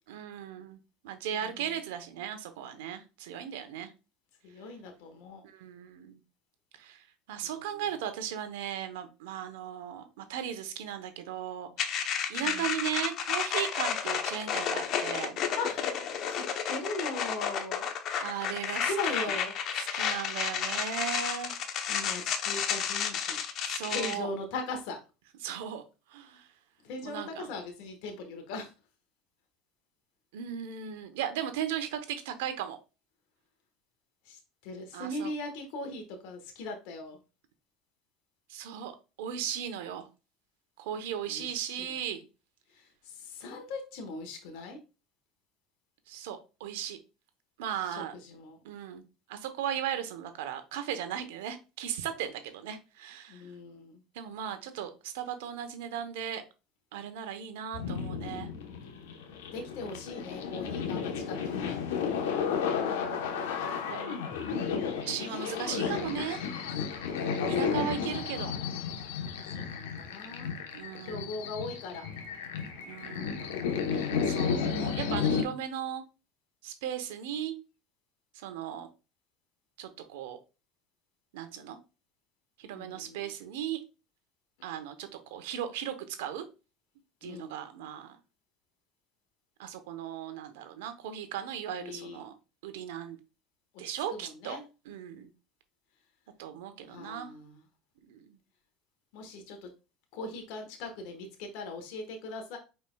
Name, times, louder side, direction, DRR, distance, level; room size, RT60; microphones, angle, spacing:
voice 1, 0.1-0.8 1.0-3.9 5.5-6.2 6.8-7.0 7.3-15.4 16.4-16.5 18.2-19.4 19.7-21.5 23.6-24.3 25.4-25.8 26.1-26.5 27.0-27.5 30.3-32.8 34.9-35.3 38.5-38.9 39.2-40.1 40.8-42.2 46.1-47.0 47.6-48.1 48.6-49.0 49.3-53.4 54.1-56.4 56.9-58.5 62.8-64.2 65.0-66.4 67.5-68.5 70.7-71.4 72.8-76.0 76.6-77.5 78.4-78.9 79.8-80.4 81.3-81.8 82.6-83.8 84.6-86.4 87.2-88.2 89.6-92.3 92.6-93.2 93.8-94.6 94.8-95.3 96.4-97.3 98.1-98.3, right 9 dB, 85° right, 9 dB, 0.9 m, -37 dB
voice 2, 4.4-5.4 7.4-7.6 12.4-12.6 15.5-15.9 16.3-17.9 18.8-19.5 21.9-23.4 23.9-25.0 26.8-28.7 34.3-34.4 34.6-37.2 41.3-41.5 41.8-41.9 43.3-44.8 47.9-48.6 53.3-54.0 59.5-61.7 64.1-64.8 69.6-70.5 71.0-72.1 74.0-74.2 82.7-83.3 87.2-87.5 91.8-92.2 94.1-94.6 96.9-97.6 99.1-99.7 100.1-102.6, left 2 dB, 70° left, 4 dB, 1.3 m, -39 dB
sound 1, 11.8-24.2, left 8 dB, 55° left, 0.8 m, -32 dB
sound 2, 57.7-75.4, left 6 dB, 90° left, 1.0 m, -33 dB
5.2 x 4.4 x 2.3 m, 0.30 s
supercardioid pair, 100°, 0 cm